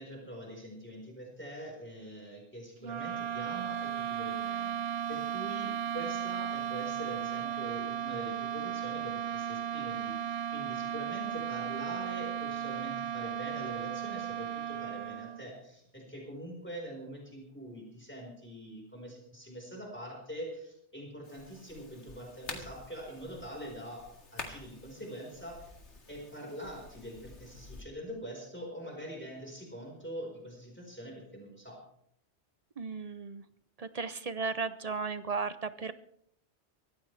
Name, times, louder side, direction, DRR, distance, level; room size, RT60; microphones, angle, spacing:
voice 1, 0.0-24.0 24.3-25.7 26.1-31.8, equal, 10° left, -1 dB, 4.6 m, -44 dB
sound 1, 2.8-15.5, right 9 dB, 65° right, 1.0 m, -35 dB
sound 2, 21.2-27.8, left 3 dB, 80° left, 2.4 m, -48 dB
voice 2, 32.8-33.4 33.8-35.9, right 4 dB, 40° right, 13 dB, 0.6 m, -35 dB
23.5 x 14.5 x 3.4 m, 0.71 s
omnidirectional pair, 1.2 m